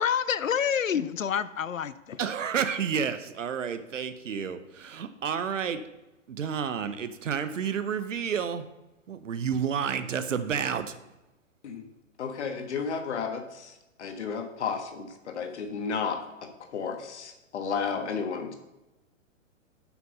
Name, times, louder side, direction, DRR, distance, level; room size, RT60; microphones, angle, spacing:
voice 1, 0.0-2.2, left 8 dB, 85° left, 15 dB, 0.5 m, -28 dB
voice 2, 2.2-5.8 6.3-8.6 9.1-10.9, right 7 dB, 70° right, 11 dB, 0.9 m, -30 dB
voice 3, 12.2-13.7 14.0-18.5, left 5 dB, 60° left, 6 dB, 1.4 m, -33 dB
7.6 x 6.0 x 5.4 m, 1.0 s
figure-of-eight pair, 110°, 39 cm